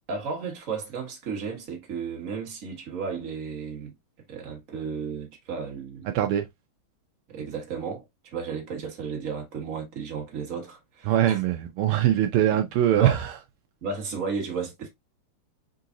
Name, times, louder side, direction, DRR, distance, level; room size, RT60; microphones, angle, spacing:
voice 1, 0.1-3.9 4.3-6.1 7.3-11.4 12.9-13.2 13.8-14.9, right 5 dB, 40° right, 1.6 m, -33 dB
voice 2, 6.1-6.5 11.1-13.3, right 12 dB, 80° right, 1.5 m, -22 dB
4.0 x 3.9 x 2.6 m
omnidirectional pair, 2.4 m